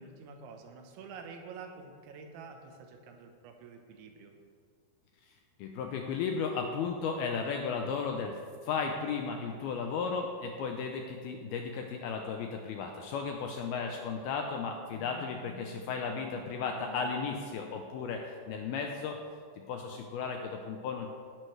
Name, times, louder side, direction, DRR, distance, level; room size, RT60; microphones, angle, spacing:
voice 1, 0.0-4.3, right 5 dB, 85° right, 4 dB, 3.5 m, -48 dB
voice 2, 5.6-19.2 19.7-21.1, left 5 dB, 80° left, 3 dB, 2.2 m, -35 dB
16.0 x 11.0 x 3.3 m, 2.1 s
omnidirectional pair, 5.2 m